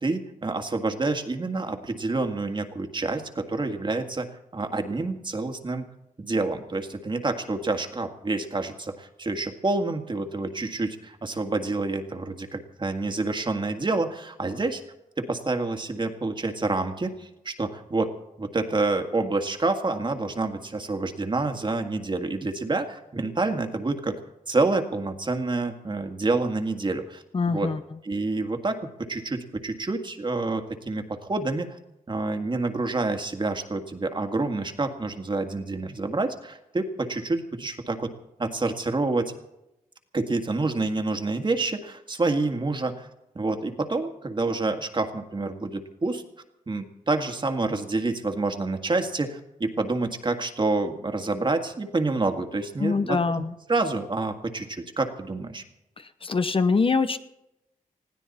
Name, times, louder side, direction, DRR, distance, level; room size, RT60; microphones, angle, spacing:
voice 1, 0.0-4.3 4.5-5.8 6.2-14.8 15.2-24.2 24.5-27.2 27.5-27.7 28.0-31.7 32.1-38.1 38.4-39.3 40.1-43.1 43.4-46.2 46.7-53.2 53.7-55.6, right 3 dB, 35° right, 6 dB, 1.9 m, -28 dB
voice 2, 27.3-27.8 52.8-53.5 56.0-57.2, left 4 dB, 40° left, 11 dB, 0.8 m, -24 dB
20.5 x 15.5 x 4.2 m, 0.88 s
cardioid pair, 80°, 14 cm